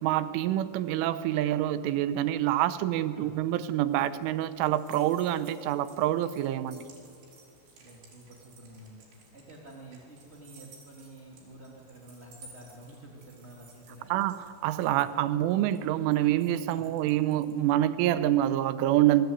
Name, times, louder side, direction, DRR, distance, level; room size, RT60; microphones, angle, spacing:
voice 1, 0.0-6.9 14.1-19.3, right 13 dB, 85° right, 14 dB, 3.4 m, -26 dB
sound 1, 3.9-17.7, right 4 dB, 65° right, 7.0 m, -57 dB
voice 2, 7.7-9.0 9.3-14.1 16.7-16.9, right 1 dB, 20° right, -2 dB, 1.8 m, -49 dB
27.5 x 20.5 x 9.4 m, 2.5 s
omnidirectional pair, 5.6 m